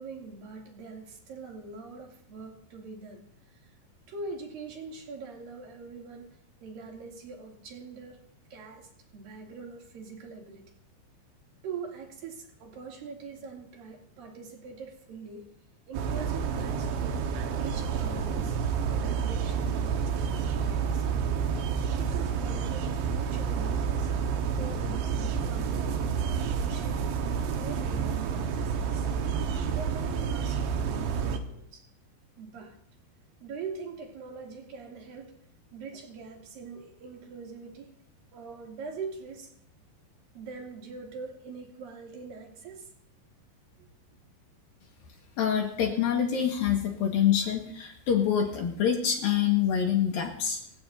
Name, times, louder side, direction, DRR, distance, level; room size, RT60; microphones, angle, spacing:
voice 1, 0.0-3.2 3.5-3.7 4.1-8.2 8.5-10.6 11.6-15.5 15.9-17.2 17.6-18.6 18.9-21.2 21.8-24.1 24.6-29.1 29.7-31.9 32.4-32.8 33.4-35.3 35.7-38.0 38.3-39.5 40.3-42.9 43.8-43.9, right 4 dB, 50° right, 0 dB, 4.1 m, -43 dB
sound 1, 15.9-31.4, right 6 dB, 75° right, 3.5 m, -29 dB
voice 2, 45.4-50.6, left 8 dB, 60° left, 2 dB, 2.9 m, -26 dB
28.0 x 16.0 x 2.7 m, 0.68 s
omnidirectional pair, 5.6 m